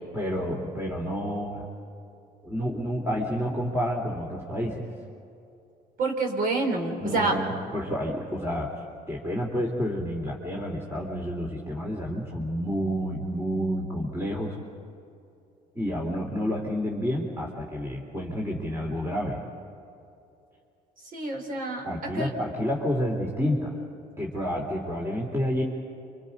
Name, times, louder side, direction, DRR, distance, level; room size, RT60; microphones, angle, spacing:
voice 1, 0.1-1.7 2.4-4.8 7.0-8.7 9.1-14.6 15.8-19.4 21.8-23.7 24.2-25.6, equal, 15° right, -2 dB, 3.4 m, -29 dB
voice 2, 6.0-7.4 21.1-21.9 22.1-22.3, right 3 dB, 55° right, 2 dB, 4.9 m, -27 dB
29.5 x 26.5 x 5.4 m, 2.7 s
cardioid pair, 110°, 17 cm